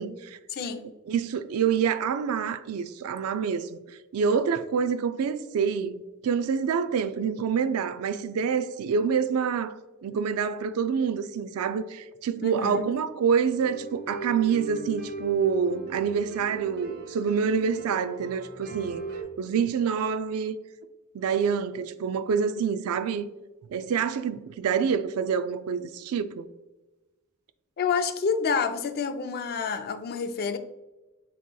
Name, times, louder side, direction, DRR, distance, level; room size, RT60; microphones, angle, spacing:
voice 1, 0.0-0.4 1.1-9.8 10.0-19.1 19.4-20.6 21.1-23.3 23.7-26.5, right 6 dB, 85° right, 0.4 m, -27 dB
voice 2, 0.5-0.9 12.4-12.9 27.8-30.6, left 5 dB, 45° left, 0.4 m, -28 dB
sound 1, 13.5-19.2, right 3 dB, 50° right, 0.8 m, -38 dB
7.2 x 2.9 x 2.2 m
head